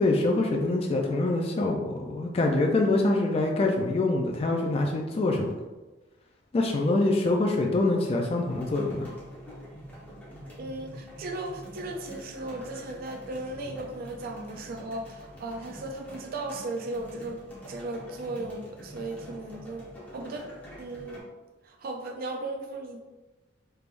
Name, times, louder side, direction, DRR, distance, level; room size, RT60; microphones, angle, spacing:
voice 1, 0.0-5.5 6.5-9.1, left 2 dB, 35° left, 1 dB, 0.3 m, -25 dB
sound 1, 8.5-21.2, equal, 10° left, 0.9 m, -46 dB
voice 2, 10.6-17.4 17.7-19.8 20.1-20.5 20.8-21.2 21.6-23.0, right 2 dB, 50° right, 3 dB, 0.3 m, -36 dB
3.4 x 3.2 x 2.5 m, 1.2 s
head